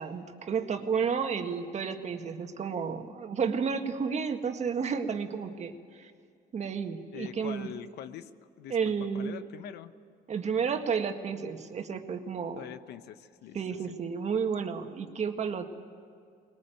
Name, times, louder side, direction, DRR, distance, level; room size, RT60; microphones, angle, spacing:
voice 1, 0.0-6.1 6.5-7.7 8.7-9.4 10.3-12.6 13.5-15.7, right 6 dB, 40° right, 6 dB, 1.7 m, -31 dB
voice 2, 7.1-9.9 12.6-14.0, left 11 dB, 75° left, 12 dB, 1.0 m, -44 dB
21.0 x 19.5 x 9.2 m, 2.3 s
cardioid pair, 110°, 17 cm